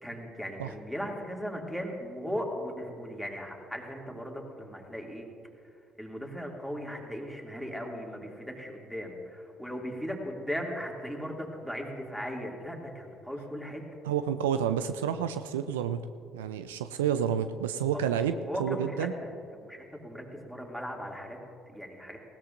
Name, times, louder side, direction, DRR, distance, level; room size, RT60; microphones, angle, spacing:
voice 1, 0.0-5.3 6.0-13.8 18.1-18.2 18.5-21.4 21.7-22.2, equal, ahead, 0 dB, 2.5 m, -37 dB
voice 2, 14.0-16.1 16.3-19.1, right 8 dB, 80° right, 11 dB, 0.4 m, -29 dB
19.5 x 16.5 x 2.6 m, 2.4 s
hypercardioid pair, 50°, 0 cm